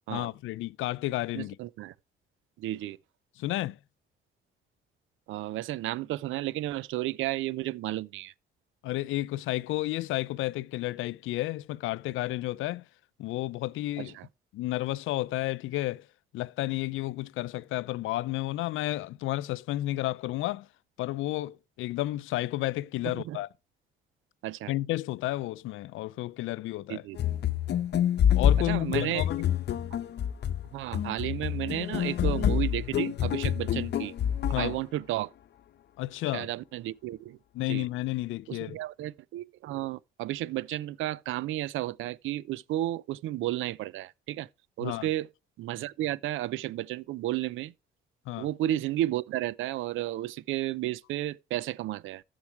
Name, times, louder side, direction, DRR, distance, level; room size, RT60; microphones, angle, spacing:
voice 1, 0.1-1.6 3.4-3.8 8.8-12.8 13.2-14.1 14.5-16.0 16.3-20.7 21.0-23.5 24.7-27.0 28.3-29.5 34.5-34.8 36.0-36.5 37.5-38.8 44.8-45.1 48.3-48.5, left 16 dB, 85° left, 0.5 m, -31 dB
voice 2, 1.3-1.9 2.6-3.0 5.3-8.3 14.0-14.3 23.0-23.4 24.4-24.7 26.9-27.2 28.6-29.3 30.7-34.1 34.6-35.3 36.3-37.4 37.7-37.9 38.5-44.5 44.8-45.3 45.6-47.7 48.4-52.2, right 15 dB, 85° right, 0.5 m, -33 dB
sound 1, 27.2-34.8, left 9 dB, 60° left, 0.8 m, -27 dB
14.5 x 4.8 x 4.6 m
cardioid pair, 90°, 20 cm